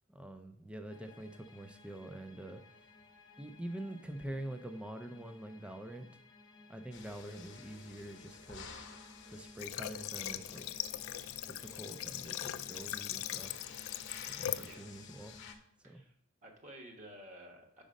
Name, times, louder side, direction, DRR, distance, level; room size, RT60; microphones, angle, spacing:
voice 1, 0.1-2.9 3.4-6.1 6.7-8.9 9.3-10.8 11.5-13.5 14.3-15.4 15.8-16.0, right 1 dB, 5° right, 6 dB, 0.4 m, -46 dB
sound 1, 0.9-15.6, left 3 dB, 20° left, 0.8 m, -59 dB
sound 2, 6.9-15.5, left 5 dB, 60° left, 0.9 m, -53 dB
Water / Water tap faucet, 9.6-14.7, left 12 dB, 85° left, 0.3 m, -40 dB
voice 2, 15.8-16.2 16.4-17.8, right 1 dB, 40° right, 2 dB, 1.2 m, -52 dB
5.2 x 4.9 x 5.0 m, 0.71 s
head